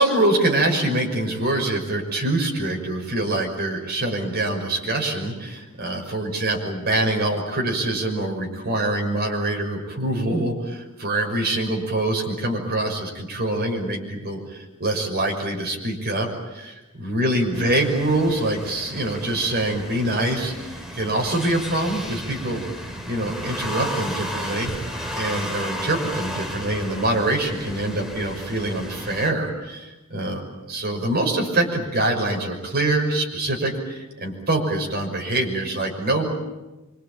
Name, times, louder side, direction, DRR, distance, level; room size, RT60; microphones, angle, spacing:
voice 1, 0.0-22.6 23.0-24.7 25.1-36.3, right 1 dB, 45° right, 1 dB, 6.1 m, -24 dB
sound 1, 17.5-29.3, equal, ahead, 3.0 m, -34 dB
26.0 x 24.5 x 8.9 m, 1.1 s
head